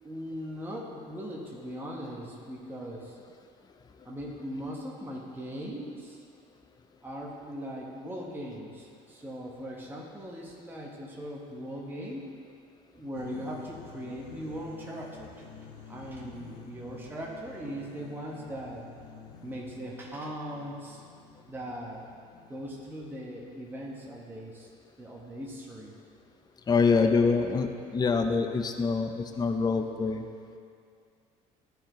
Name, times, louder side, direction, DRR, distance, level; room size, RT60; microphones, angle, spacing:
voice 1, 0.0-3.2 4.0-6.2 7.0-12.3 12.9-15.5 15.9-18.8 19.4-21.0 21.5-22.0 22.5-24.7 25.0-25.9, equal, 10° right, -3 dB, 1.2 m, -39 dB
sound 1, 13.1-24.1, left 6 dB, 85° left, 0.7 m, -50 dB
voice 2, 26.7-30.3, left 4 dB, 25° left, 6 dB, 0.5 m, -25 dB
11.5 x 4.4 x 3.1 m, 2.3 s
supercardioid pair, 80°, 18 cm